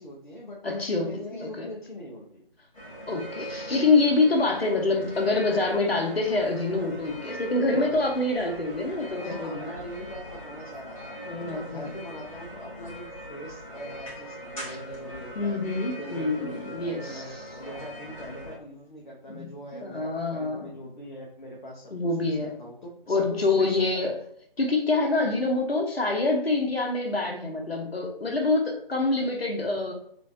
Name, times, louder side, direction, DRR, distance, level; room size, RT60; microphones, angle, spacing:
voice 1, 0.0-2.4 5.8-5.9 7.7-8.0 9.2-15.6 16.0-17.3 17.6-23.9, left 1 dB, 50° left, -2 dB, 0.7 m, -42 dB
voice 2, 0.6-1.7 3.1-9.7 11.2-11.9 15.4-17.4 19.3-19.5 19.7-20.7 21.9-22.5 23.1-24.1 24.6-29.9, left 3 dB, 85° left, 3 dB, 0.8 m, -26 dB
sound 1, 2.7-18.6, equal, 35° left, 1.2 m, -41 dB
3.0 x 2.5 x 2.5 m, 0.66 s
figure-of-eight pair, 160°, 30 cm